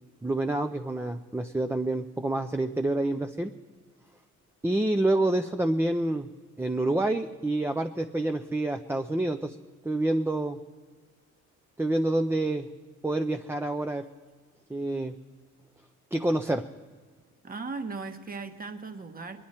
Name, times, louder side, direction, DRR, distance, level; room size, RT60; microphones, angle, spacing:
voice 1, 0.2-3.5 4.6-6.3 6.6-9.6 9.8-10.6 11.8-12.7 13.0-14.0 14.7-15.1 16.1-16.6, right 2 dB, 10° right, 7 dB, 0.5 m, -27 dB
voice 2, 17.4-19.4, right 4 dB, 30° right, 7 dB, 1.2 m, -37 dB
22.0 x 10.5 x 4.3 m, 1.5 s
cardioid pair, 90°, 30 cm